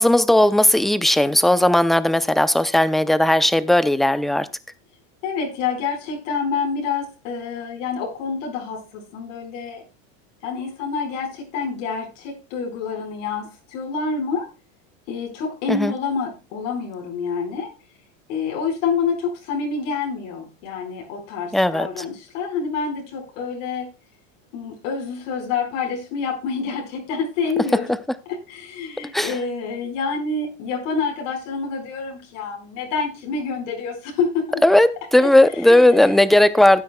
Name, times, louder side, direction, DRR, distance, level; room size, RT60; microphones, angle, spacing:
voice 1, 0.0-4.5 15.7-15.9 21.5-22.0 29.1-29.3 34.6-36.8, left 1 dB, ahead, 0.5 m, -16 dB
voice 2, 5.2-9.8 10.4-14.5 15.1-17.7 18.3-23.9 24.5-27.9 28.5-34.6 35.2-35.3 35.6-35.9, left 5 dB, 75° left, 4.6 m, -27 dB
17.0 x 9.3 x 2.2 m
supercardioid pair, 135°, 38 cm